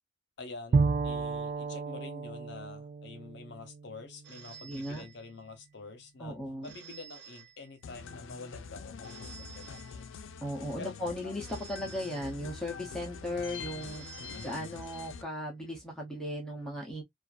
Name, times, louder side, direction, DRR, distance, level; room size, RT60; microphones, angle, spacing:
voice 1, 0.4-6.4 6.6-10.1 10.8-11.0 11.2-11.3 11.8-12.0 14.2-14.7, left 3 dB, 60° left, 0.8 m, -47 dB
Bowed string instrument, 0.7-4.5, right 4 dB, 40° right, 0.3 m, -32 dB
Telephone, 4.2-5.7 6.6-8.1 9.0-10.5 11.4-12.9 13.8-15.3, right 6 dB, 60° right, 0.7 m, -52 dB
voice 2, 4.6-5.0 6.2-6.7 10.4-17.0, left 1 dB, 5° left, 0.6 m, -37 dB
sound 1, 7.8-15.2, left 6 dB, 75° left, 0.4 m, -45 dB
2.5 x 2.4 x 2.3 m
head